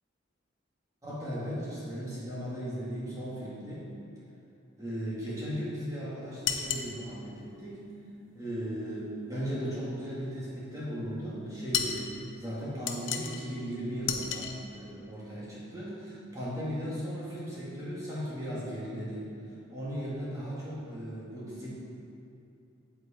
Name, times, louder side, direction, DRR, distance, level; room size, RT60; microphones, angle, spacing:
voice 1, 1.0-3.9 4.8-7.9 8.3-19.3 19.7-21.7, equal, 15° right, -8 dB, 2.3 m, -37 dB
sound 1, 6.4-6.9 11.7-12.1 12.9-13.4 14.1-14.6, left 8 dB, 85° left, 0.7 m, -32 dB
8.2 x 8.0 x 4.5 m, 2.7 s
head